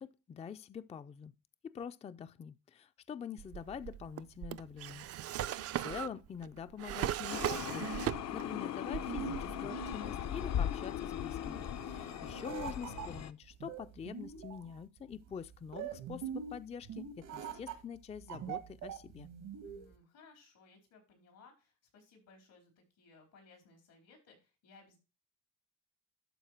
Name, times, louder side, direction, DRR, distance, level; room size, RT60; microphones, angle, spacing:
voice 1, 0.0-1.3 1.6-5.1 5.8-19.3, left 7 dB, 20° left, 0.3 m, -45 dB
Drawer open or close, 3.4-8.6 8.9-9.7, right 12 dB, 55° right, 0.4 m, -38 dB
voice 2, 5.2-5.7 12.1-12.4 19.6-25.0, left 4 dB, 90° left, 4.1 m, -61 dB
sound 1, 7.3-13.3, left 10 dB, 60° left, 0.6 m, -38 dB
sound 2, 7.6-19.9, right 8 dB, 90° right, 1.6 m, -45 dB
12.0 x 4.3 x 4.4 m
cardioid pair, 90°, 30 cm